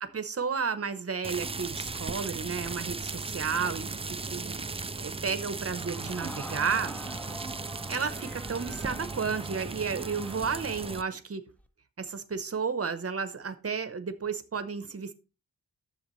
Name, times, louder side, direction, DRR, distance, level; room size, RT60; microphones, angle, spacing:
voice 1, 0.0-6.9 7.9-11.4 12.0-15.1, right 5 dB, 40° right, 11 dB, 0.9 m, -32 dB
sound 1, 1.2-11.0, right 4 dB, 15° right, 0.3 m, -37 dB
Crowd, 5.7-11.2 11.6-11.7, equal, 5° left, 0.7 m, -45 dB
10.5 x 7.2 x 3.1 m, 0.32 s
wide cardioid pair, 130°, 36 cm